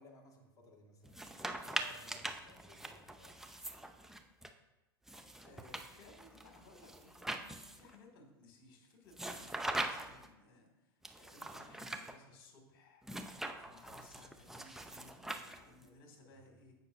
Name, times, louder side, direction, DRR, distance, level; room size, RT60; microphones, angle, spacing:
voice 1, 0.0-3.5 16.3-16.4, left 2 dB, 25° left, 1 dB, 1.7 m, -60 dB
sound 1, 1.0-4.5 5.1-7.9 9.1-10.3 11.0-12.1 13.0-15.9, right 1 dB, 5° right, 0.6 m, -43 dB
voice 2, 5.4-7.3 7.7-13.0 13.5-16.7, left 2 dB, 55° left, 2 dB, 2.4 m, -60 dB
16.0 x 5.8 x 2.7 m, 1.0 s
figure-of-eight pair, 90°, 13 cm